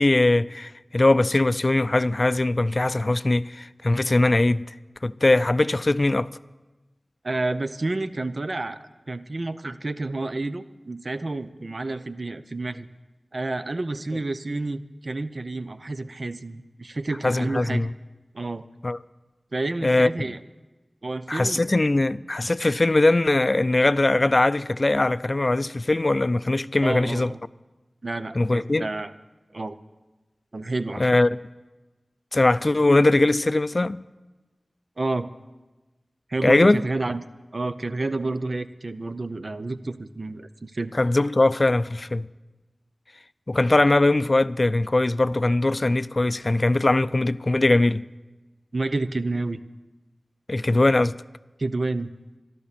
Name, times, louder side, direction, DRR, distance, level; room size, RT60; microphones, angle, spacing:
voice 1, 0.0-4.7 5.0-6.3 17.2-17.9 18.8-19.0 19.8-20.1 21.3-27.3 28.4-28.9 31.0-31.3 32.3-34.0 36.4-36.8 40.9-42.3 43.5-48.0 50.5-51.2, left 2 dB, 45° left, 0.4 m, -21 dB
voice 2, 7.2-12.9 13.3-17.9 18.3-18.7 19.5-20.4 21.0-21.6 26.8-27.4 28.0-29.1 29.5-29.8 30.5-31.1 35.0-35.3 36.3-37.2 37.5-40.9 48.7-49.6 51.6-52.1, right 2 dB, 60° right, 0.7 m, -29 dB
13.0 x 12.0 x 6.8 m
wide cardioid pair, 40°, 0 cm